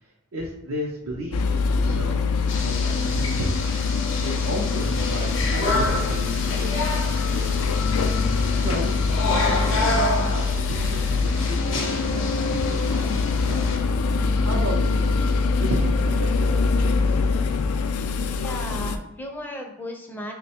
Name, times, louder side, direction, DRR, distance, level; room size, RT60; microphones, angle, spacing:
voice 1, 0.3-2.2 2.6-3.6 4.2-7.0 7.3-7.9 8.6-9.0 9.4-13.7 14.4-15.1 15.6-17.2, equal, 75° right, -2 dB, 0.6 m, -33 dB
sound 1, 1.3-19.0, left 4 dB, 85° left, 0.3 m, -23 dB
sound 2, 2.5-13.8, left 2 dB, 60° left, 0.7 m, -29 dB
voice 2, 18.3-20.3, left 1 dB, 10° left, 1 dB, 0.4 m, -35 dB
3.1 x 2.2 x 4.2 m, 0.85 s
head